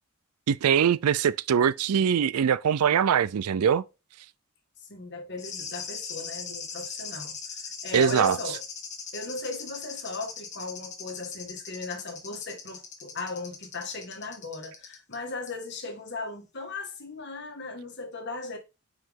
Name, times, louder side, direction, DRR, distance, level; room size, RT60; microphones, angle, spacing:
voice 1, 0.5-3.8 7.9-8.4, right 8 dB, 85° right, 0.4 m, -22 dB
voice 2, 4.9-7.4 7.6-8.6 9.1-18.6, left 3 dB, 50° left, 1.7 m, -37 dB
sound 1, 5.4-15.2 15.5-15.6, left 6 dB, 35° left, 1.4 m, -40 dB
5.8 x 4.9 x 3.6 m
head